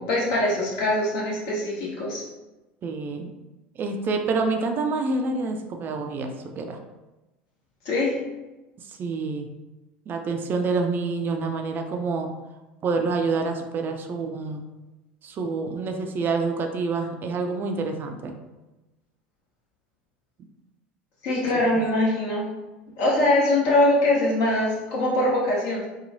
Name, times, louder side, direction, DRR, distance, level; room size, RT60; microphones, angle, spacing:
voice 1, 0.0-2.2 7.8-8.2 21.2-22.5 23.0-25.9, left 1 dB, 60° left, -5 dB, 1.1 m, -22 dB
voice 2, 2.8-3.3 3.8-6.8 8.8-9.5 10.1-12.4 12.8-14.6 15.2-18.3 21.5-21.8, right 4 dB, 35° right, 4 dB, 0.4 m, -27 dB
2.9 x 2.2 x 2.6 m, 1.1 s
hypercardioid pair, 80°, 6 cm